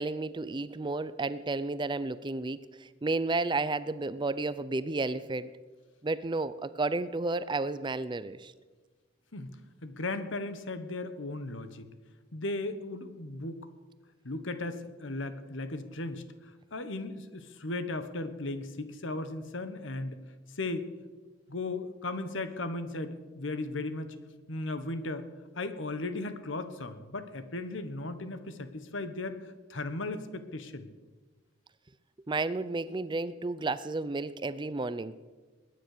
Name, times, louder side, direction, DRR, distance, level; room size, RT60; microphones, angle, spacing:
voice 1, 0.0-5.5 6.0-8.5 32.3-35.2, right 3 dB, 25° right, 15 dB, 0.5 m, -32 dB
voice 2, 9.8-11.9 12.3-13.7 14.2-16.2 16.7-20.2 20.5-20.9 21.5-24.1 24.5-25.3 25.6-30.9, left 2 dB, 70° left, 11 dB, 1.3 m, -36 dB
21.0 x 9.6 x 6.7 m, 1.4 s
head